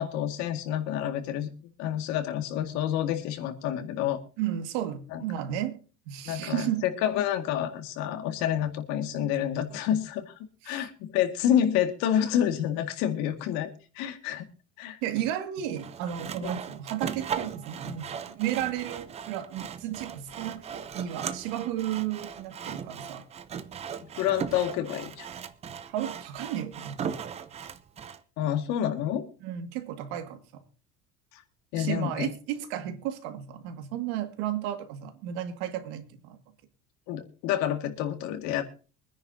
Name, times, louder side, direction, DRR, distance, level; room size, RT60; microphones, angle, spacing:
voice 1, 0.0-1.5 1.8-4.2 5.1-5.2 6.3-10.3 10.6-14.5 14.8-15.0 16.4-16.5 24.0-25.3 28.4-29.3 31.3-31.4 31.7-32.3 37.1-38.6, left 10 dB, 70° left, 2.0 m, -28 dB
voice 2, 4.4-5.8 6.1-6.8 10.6-10.9 15.0-23.2 25.9-27.1 29.4-30.6 31.8-36.4, right 11 dB, 90° right, 2.1 m, -33 dB
Sawing, 15.8-28.2, right 7 dB, 20° right, 0.6 m, -38 dB
24.0 x 10.0 x 2.8 m
cardioid pair, 170°, 29 cm